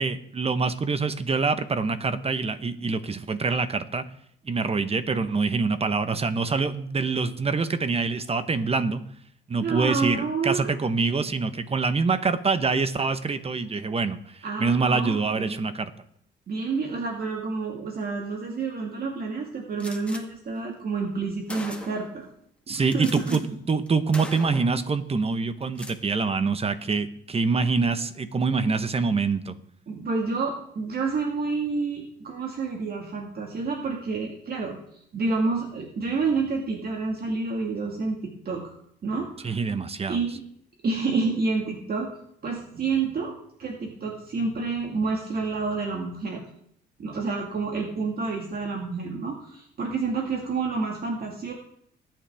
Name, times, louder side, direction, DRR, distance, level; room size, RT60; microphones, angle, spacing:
voice 1, 0.0-4.1 4.4-9.0 9.5-15.9 22.7-23.4 23.7-29.6 39.4-40.2, right 4 dB, 30° right, 11 dB, 1.0 m, -25 dB
voice 2, 9.6-10.7 14.4-15.6 16.5-22.3 22.7-23.4 29.9-38.7 39.0-39.6 40.1-40.4 40.8-42.1 42.4-46.4 47.0-51.5, right 4 dB, 50° right, 1 dB, 1.9 m, -29 dB
Gunshot gunfire, 19.8-20.2 21.0-21.1 21.5-22.2 22.9-23.4 23.7-23.9 24.1-24.8 25.6-26.0, left 1 dB, 5° left, 1.7 m, -39 dB
19.0 x 8.9 x 3.5 m, 0.70 s
cardioid pair, 90°, 20 cm